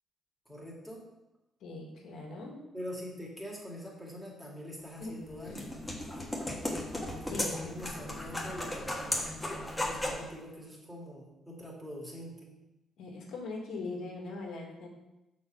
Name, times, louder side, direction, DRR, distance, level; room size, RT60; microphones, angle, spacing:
voice 1, 0.5-1.0 2.7-5.7 7.1-9.2 9.7-12.5, equal, 5° right, -4 dB, 2.4 m, -44 dB
voice 2, 1.6-2.6 5.0-5.1 5.5-5.6 6.6-6.7 7.3-7.6 13.0-14.9, left 3 dB, 80° left, 0 dB, 1.5 m, -41 dB
sound 1, 5.0-10.3, left 1 dB, 10° left, 1.5 m, -36 dB
6.4 x 4.1 x 5.2 m, 0.94 s
cardioid pair, 90°, 0 cm